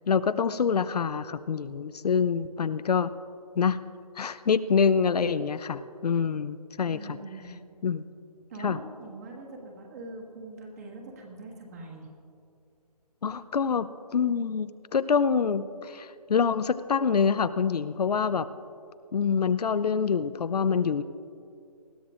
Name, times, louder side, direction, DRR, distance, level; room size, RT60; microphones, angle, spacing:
voice 1, 0.1-3.1 3.6-3.8 4.2-7.2 7.8-8.0 8.6-8.8 13.2-18.5 19.1-21.0, left 6 dB, 75° left, 14 dB, 0.5 m, -26 dB
voice 2, 6.9-7.5 8.5-12.1, right 2 dB, 25° right, 0 dB, 1.6 m, -43 dB
20.5 x 13.5 x 2.5 m, 2.5 s
hypercardioid pair, 170°, 20 cm